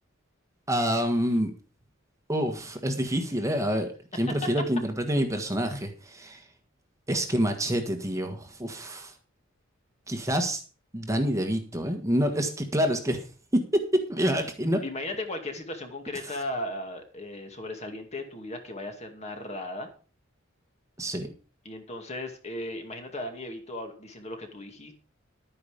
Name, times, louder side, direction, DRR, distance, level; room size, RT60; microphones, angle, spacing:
voice 1, 0.7-1.5 2.3-6.4 7.1-9.1 10.1-10.6 10.9-13.2 14.1-14.8 21.0-21.3, equal, 15° right, 5 dB, 1.5 m, -27 dB
voice 2, 14.8-19.9 21.6-24.9, left 1 dB, 35° left, 5 dB, 2.3 m, -36 dB
11.5 x 9.7 x 5.1 m, 0.37 s
head